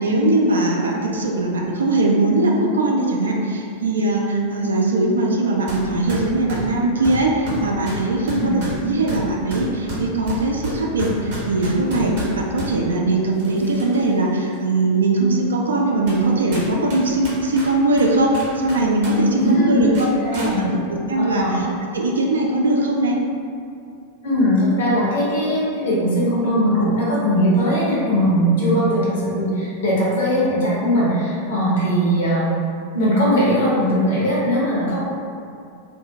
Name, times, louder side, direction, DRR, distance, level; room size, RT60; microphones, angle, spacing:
voice 1, 0.0-20.8 21.1-21.7 21.9-23.2, right 2 dB, 70° right, -1 dB, 0.3 m, -20 dB
sound 1, 5.7-5.8 6.1-12.7 13.4-14.1 14.5-14.6 15.4-15.5 16.1-16.2 16.5-19.1 19.4-19.5 19.9-20.5, equal, 55° right, 0.8 m, -31 dB
voice 2, 19.4-19.8 20.2-20.7 21.2-21.7 24.2-32.5 32.9-35.1, equal, 65° left, -7 dB, 0.8 m, -19 dB
2.5 x 2.0 x 2.7 m, 2.4 s
figure-of-eight pair, 90°, 0 cm